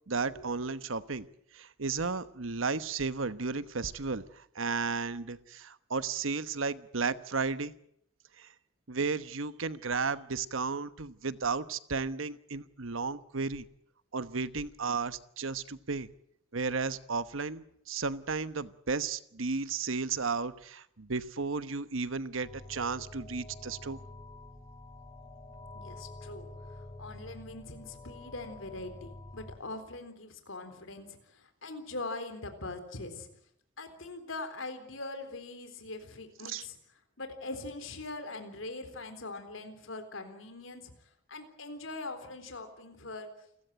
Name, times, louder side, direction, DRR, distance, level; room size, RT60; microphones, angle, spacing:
voice 1, 0.1-1.3 1.5-7.7 8.4-8.5 8.9-13.7 14.1-16.1 16.5-24.0 36.4-36.6, right 4 dB, 80° right, 14 dB, 1.1 m, -34 dB
sound 1, 22.4-29.6, left 2 dB, 15° left, 5.1 m, -48 dB
voice 2, 25.7-26.5 27.0-33.3 33.8-36.8 37.2-40.9 41.3-43.3, left 2 dB, 75° left, 8 dB, 3.8 m, -42 dB
29.0 x 15.0 x 9.0 m, 0.73 s
head